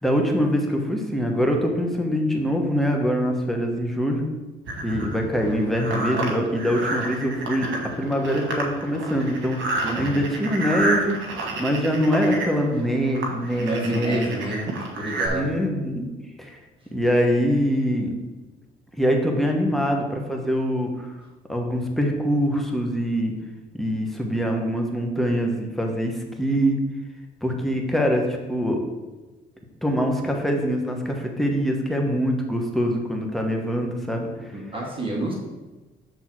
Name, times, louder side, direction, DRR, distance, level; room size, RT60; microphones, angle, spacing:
voice 1, 0.0-4.3 4.8-7.7 8.0-11.2 11.6-14.3 15.3-16.1 16.4-16.6 16.9-18.1 18.9-21.1 21.5-23.3 23.7-26.8 27.4-28.8 29.8-34.3, equal, ahead, 2 dB, 1.1 m, -24 dB
sound 1, 4.7-15.3, right 2 dB, 70° right, 1.3 m, -30 dB
voice 2, 9.8-10.2 13.6-15.6 34.5-35.3, right 2 dB, 25° right, -3 dB, 1.6 m, -29 dB
6.2 x 3.6 x 6.1 m, 1.2 s
cardioid pair, 90°, 20 cm